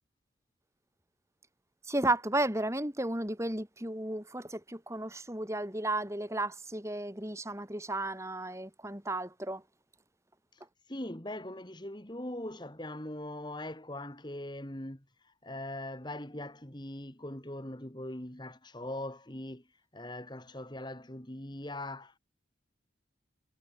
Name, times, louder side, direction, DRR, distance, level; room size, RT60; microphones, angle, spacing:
voice 1, 1.9-9.6, right 2 dB, 15° right, 3.3 m, -33 dB
voice 2, 10.5-19.6 19.9-22.2, left 1 dB, 20° left, 2.1 m, -41 dB
head